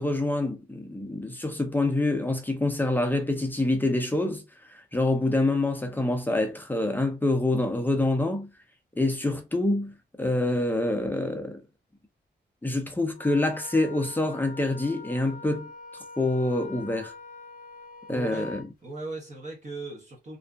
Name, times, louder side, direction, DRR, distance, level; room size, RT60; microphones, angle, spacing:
voice 1, 0.0-8.5 9.0-11.6 12.6-15.7 16.2-17.1 18.1-18.6, left 2 dB, 10° left, 0.4 m, -26 dB
Wind instrument woodwind instrument, 13.1-18.7, left 3 dB, 50° left, 0.7 m, -44 dB
voice 2, 18.1-18.5 18.8-20.4, right 3 dB, 40° right, 0.7 m, -38 dB
2.5 x 2.3 x 2.2 m
wide cardioid pair, 155°, 18 cm